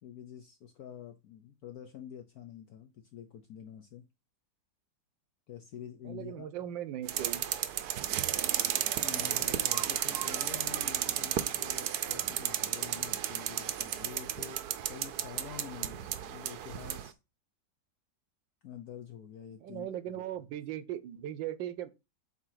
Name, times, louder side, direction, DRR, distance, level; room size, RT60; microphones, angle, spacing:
voice 1, 0.0-4.0 5.5-6.5 9.0-17.2 18.6-20.2, left 9 dB, 60° left, 1.2 m, -47 dB
voice 2, 6.0-7.4 19.6-21.9, right 11 dB, 85° right, 1.5 m, -38 dB
sound 1, 7.1-17.1, right 11 dB, 65° right, 1.1 m, -33 dB
7.9 x 2.9 x 5.7 m
omnidirectional pair, 2.0 m